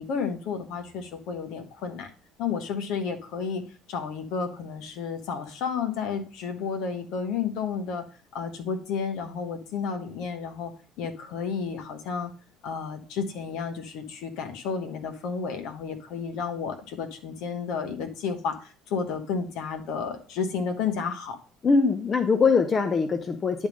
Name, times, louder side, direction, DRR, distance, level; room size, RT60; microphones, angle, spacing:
voice 1, 0.0-2.1 2.4-3.6 3.9-8.0 8.3-10.7 11.0-12.3 12.6-21.4, left 6 dB, 60° left, 5 dB, 1.1 m, -31 dB
voice 2, 21.6-23.7, left 4 dB, 30° left, 7 dB, 0.8 m, -22 dB
10.5 x 3.6 x 5.3 m, 0.39 s
figure-of-eight pair, 55°, 0 cm